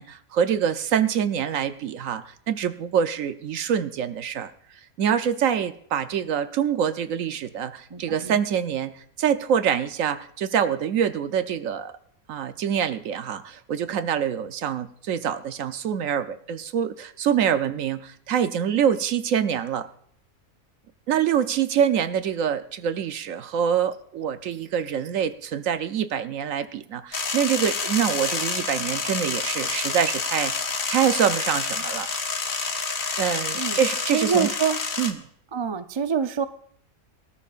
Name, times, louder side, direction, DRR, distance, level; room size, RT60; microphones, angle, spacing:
voice 1, 0.0-4.5 5.0-11.9 12.3-19.9 21.1-32.1 33.2-34.5 35.0-35.2, right 8 dB, 70° right, 11 dB, 1.1 m, -25 dB
voice 2, 7.9-8.4 33.6-33.8 34.1-34.8 35.5-36.4, right 6 dB, 45° right, 9 dB, 0.3 m, -25 dB
sound 1, 27.1-35.1, left 4 dB, 70° left, 1.7 m, -28 dB
24.5 x 13.0 x 2.5 m, 0.63 s
omnidirectional pair, 1.5 m